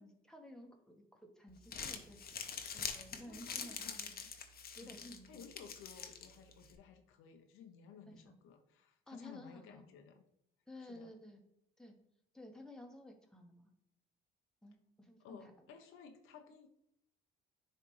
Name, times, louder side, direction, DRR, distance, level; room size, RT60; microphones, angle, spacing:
voice 1, 0.0-4.1 4.7-5.4 8.1-8.3 9.1-9.8 10.7-11.4 11.8-11.9 12.3-13.7 14.6-15.7, left 1 dB, 5° left, 2 dB, 1.1 m, -54 dB
Crumpling crinkling, 1.5-6.7, left 6 dB, 45° left, 0.8 m, -45 dB
voice 2, 3.2-4.3 4.8-10.2 10.8-11.2 15.2-16.7, left 6 dB, 80° left, 5 dB, 0.8 m, -57 dB
9.9 x 3.3 x 3.1 m, 0.79 s
cardioid pair, 85°, 21 cm